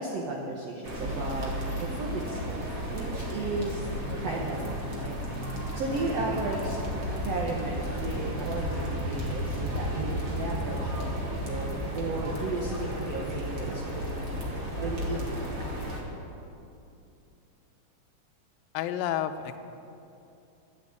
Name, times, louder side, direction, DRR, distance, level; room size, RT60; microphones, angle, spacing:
voice 1, 0.0-1.5 1.8-3.9 4.2-5.2 5.7-6.8 7.2-11.1 11.4-14.4 14.8-15.6, right 2 dB, 75° right, -2 dB, 1.4 m, -34 dB
sound 1, 0.8-16.0, equal, 50° right, 1.0 m, -33 dB
voice 2, 18.7-19.6, left 11 dB, 80° left, 10 dB, 2.2 m, -30 dB
13.0 x 7.5 x 8.5 m, 2.7 s
omnidirectional pair, 4.5 m